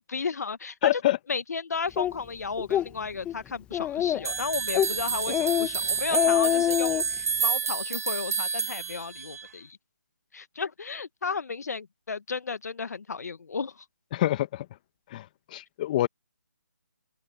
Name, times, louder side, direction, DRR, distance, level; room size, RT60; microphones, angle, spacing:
voice 1, 0.0-1.0 1.3-9.8 10.3-13.7, left 5 dB, 60° left, 1.4 m, -33 dB
voice 2, 0.8-1.2 14.1-14.6 15.1-15.2 15.5-16.1, left 14 dB, 25° left, 1.5 m, -25 dB
Speech, 2.0-2.1 2.6-2.9 3.2-3.3 3.7-4.3 4.7-4.9 5.3-5.7 6.0-7.0, left 12 dB, 10° left, 1.1 m, -25 dB
sound 1, 4.2-9.5, right 6 dB, 55° right, 1.2 m, -29 dB
open air
figure-of-eight pair, 155°, 10 cm